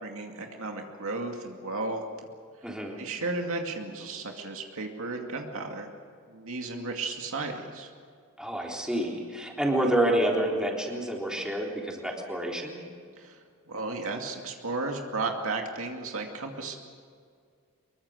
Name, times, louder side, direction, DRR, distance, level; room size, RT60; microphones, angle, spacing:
voice 1, 0.0-2.3 3.0-5.9 6.3-7.9 13.2-13.4 13.7-16.8, right 3 dB, 65° right, 3 dB, 2.4 m, -34 dB
voice 2, 2.6-3.0 8.4-12.8, right 1 dB, 5° right, -1 dB, 3.7 m, -28 dB
24.5 x 22.5 x 6.6 m, 2.1 s
head